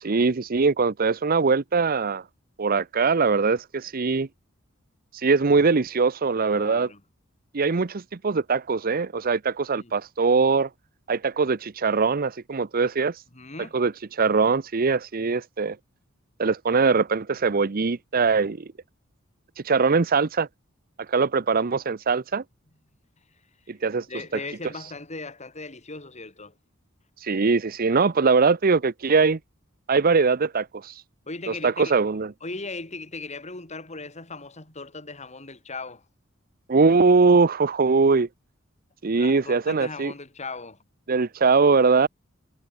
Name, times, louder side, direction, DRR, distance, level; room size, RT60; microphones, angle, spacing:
voice 1, 0.0-2.2 2.6-4.3 5.1-6.9 7.5-10.7 11.1-13.2 13.7-15.8 16.4-18.7 19.6-20.5 21.1-22.4 23.7-24.1 24.3-24.4 27.2-29.4 29.9-30.9 31.6-32.3 36.7-38.3 39.0-40.1 41.1-42.1, right 4 dB, 45° right, 0.7 m, -22 dB
voice 2, 6.4-7.0 9.7-9.9 13.3-13.8 24.1-26.5 31.3-31.9 32.4-36.0 39.2-40.8, left 3 dB, 35° left, 4.6 m, -38 dB
head